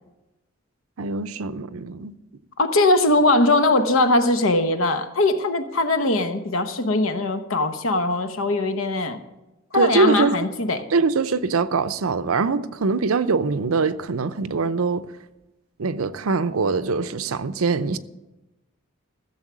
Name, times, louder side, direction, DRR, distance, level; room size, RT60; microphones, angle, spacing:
voice 1, 1.0-2.2 9.7-10.5 10.9-15.1 15.8-18.0, right 4 dB, 90° right, 0.6 m, -23 dB
voice 2, 2.6-9.2 9.7-10.8, left 2 dB, 75° left, 1.0 m, -20 dB
15.0 x 7.3 x 6.2 m
head